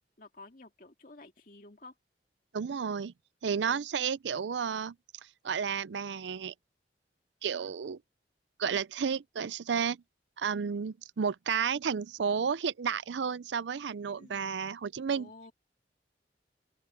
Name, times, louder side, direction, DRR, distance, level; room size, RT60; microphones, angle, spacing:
voice 1, 0.2-1.9 3.6-3.8 14.2-14.5 15.1-15.5, left 2 dB, 50° left, 2.4 m, -52 dB
voice 2, 2.5-3.1 3.4-5.0 5.4-6.5 7.4-8.0 8.6-10.0 10.4-15.3, right 6 dB, 90° right, 0.5 m, -32 dB
open air
head